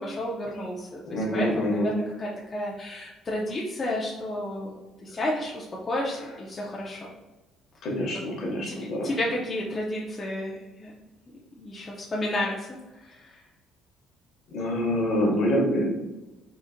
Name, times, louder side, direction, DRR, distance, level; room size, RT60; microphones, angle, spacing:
voice 1, 0.0-7.0 8.7-10.9 11.6-12.7 13.0-13.4, left 1 dB, 20° left, -4 dB, 0.4 m, -32 dB
voice 2, 1.1-1.9 7.8-9.1 14.5-16.1, equal, 50° left, -1 dB, 0.8 m, -26 dB
3.8 x 2.5 x 2.5 m, 1.1 s
cardioid pair, 175°, 0 cm